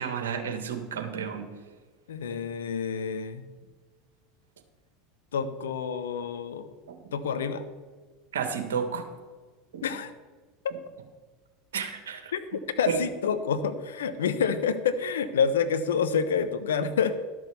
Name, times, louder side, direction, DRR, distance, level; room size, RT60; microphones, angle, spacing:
voice 1, 0.0-1.5 6.9-7.0 8.3-9.1 9.7-9.8 11.7-12.3 12.9-13.0, right 6 dB, 80° right, 6 dB, 1.6 m, -31 dB
voice 2, 2.1-3.5 5.3-6.7 7.1-7.7 9.8-10.1 12.3-12.4 12.8-17.2, left 6 dB, 80° left, 10 dB, 0.9 m, -28 dB
12.0 x 6.3 x 6.9 m, 1.4 s
hypercardioid pair, 85°, 0 cm